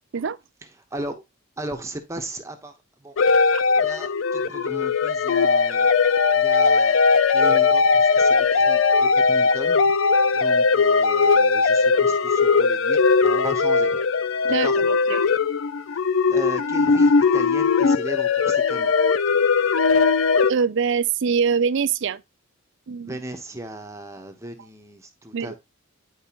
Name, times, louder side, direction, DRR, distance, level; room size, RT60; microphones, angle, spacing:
voice 1, 0.9-1.2 1.6-2.7 3.0-3.2 3.8-5.9 6.3-7.0 7.3-9.9 10.3-14.0 14.5-14.9 16.3-18.9 23.0-25.6, right 1 dB, 15° right, 0.9 m, -36 dB
sound 1, 3.2-20.5, left 4 dB, 75° left, 0.4 m, -19 dB
voice 2, 14.4-15.2 20.5-22.2 22.9-23.2 25.3-25.5, right 6 dB, 65° right, 0.5 m, -24 dB
10.0 x 4.6 x 2.9 m
head